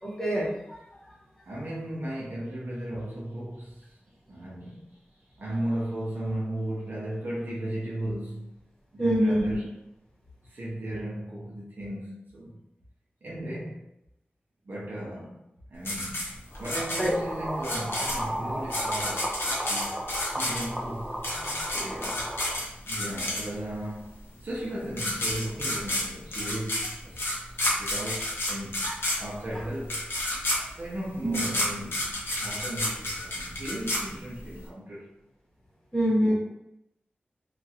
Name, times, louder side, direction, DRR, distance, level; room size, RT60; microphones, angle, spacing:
voice 1, 0.0-0.8 9.0-9.5 17.0-17.1 27.6-27.8 28.8-28.9 29.5-29.6 31.2-31.4 35.9-36.3, equal, 10° left, 1.1 m, -25 dB
voice 2, 1.5-3.9 4.3-5.0 5.4-8.5 8.9-9.7 10.4-12.6 13.2-13.9 14.6-15.4 15.7-16.3 16.6-22.4 22.8-24.1 24.4-27.4 27.8-28.9 29.2-30.1 30.8-35.1 36.2-36.3, right 1 dB, 55° right, 0.7 m, -36 dB
sound 1, 15.9-23.8 24.6-24.7 24.9-34.6, left 1 dB, 80° left, 0.8 m, -30 dB
sound 2, 16.5-22.6, right 1 dB, 10° right, 0.5 m, -35 dB
2.8 x 2.4 x 2.7 m
wide cardioid pair, 100°, 4 cm